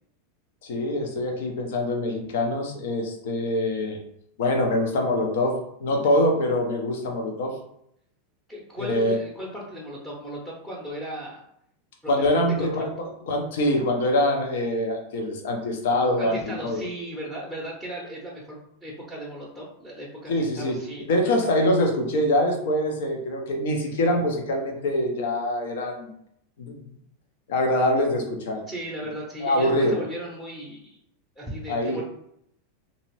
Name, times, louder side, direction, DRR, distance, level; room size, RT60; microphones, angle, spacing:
voice 1, 0.6-4.0 4.4-7.5 8.8-9.2 12.1-16.8 20.3-26.1 26.6-26.8 27.5-28.6 29.4-30.0 31.7-32.0, left 1 dB, 60° left, 2 dB, 0.7 m, -24 dB
voice 2, 8.5-11.4 12.0-12.7 16.2-21.3 28.7-31.0 31.4-32.0, equal, 5° left, -4 dB, 0.8 m, -36 dB
2.9 x 2.7 x 3.0 m, 0.74 s
figure-of-eight pair, 85°, 0 cm